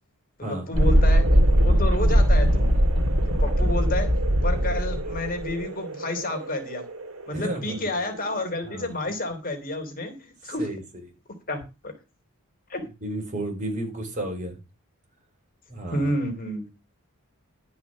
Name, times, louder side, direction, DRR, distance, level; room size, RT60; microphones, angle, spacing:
voice 1, 0.4-2.7 3.4-4.1 4.4-6.8 7.3-10.7 11.5-11.9 12.7-12.9 15.9-16.7, left 1 dB, 40° left, 5 dB, 3.2 m, -30 dB
Thunderstorm, 0.7-8.2, equal, 75° right, 2.2 m, -21 dB
voice 2, 7.3-7.8 8.7-8.9 10.6-10.8 13.0-14.6 15.7-16.1, right 1 dB, 35° right, 2 dB, 5.1 m, -32 dB
12.5 x 5.8 x 7.3 m, 0.28 s
head